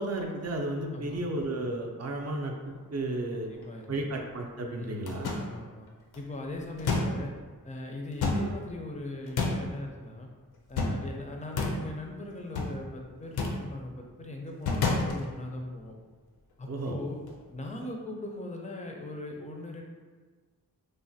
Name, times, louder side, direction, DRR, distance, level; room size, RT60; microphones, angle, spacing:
voice 1, 0.0-2.5 2.9-3.5 3.9-5.3 16.7-16.9, right 2 dB, 45° right, 2 dB, 0.4 m, -33 dB
sound 1, 2.6-4.0 4.8-4.9 5.1-5.9 6.1-7.4 8.1-8.9 9.2-9.8 10.5-11.1 11.4-12.0 12.3-12.8 13.2-13.8 14.5-15.6 16.8-16.9 17.3-17.5, left 3 dB, 90° left, 0.5 m, -31 dB
voice 2, 3.5-4.0 4.8-5.9 6.2-7.3 7.6-10.3 10.7-15.9 16.6-17.2 17.5-19.8, left 2 dB, 20° left, 1 dB, 0.4 m, -40 dB
3.1 x 2.1 x 2.6 m, 1.4 s
wide cardioid pair, 80°, 36 cm